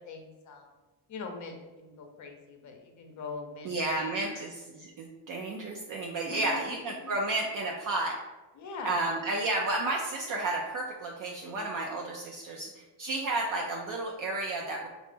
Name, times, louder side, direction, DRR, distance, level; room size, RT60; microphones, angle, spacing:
voice 1, 0.1-0.7 1.1-4.4 6.3-7.1 8.5-9.0 9.4-9.5, left 4 dB, 40° left, 4 dB, 0.6 m, -42 dB
voice 2, 3.6-8.2 8.8-14.9, right 2 dB, 45° right, 0 dB, 0.5 m, -32 dB
3.2 x 2.0 x 3.3 m, 1.1 s
supercardioid pair, 80°, 47 cm